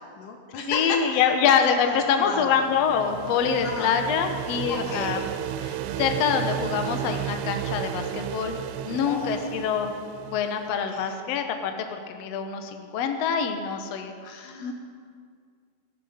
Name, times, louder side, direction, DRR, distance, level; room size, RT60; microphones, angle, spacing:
voice 1, 0.0-1.5 1.8-2.5 3.6-3.9 4.7-5.2 9.1-9.7 10.6-11.4 14.2-14.7, left 4 dB, 80° left, 2 dB, 3.4 m, -35 dB
voice 2, 0.7-5.2 5.6-8.6 8.8-9.9 10.3-14.1 14.6-14.7, left 7 dB, 65° left, 6 dB, 1.9 m, -25 dB
sound 1, 2.0-10.8, right 10 dB, 80° right, 2.0 m, -33 dB
18.0 x 14.5 x 5.1 m, 2.1 s
omnidirectional pair, 3.6 m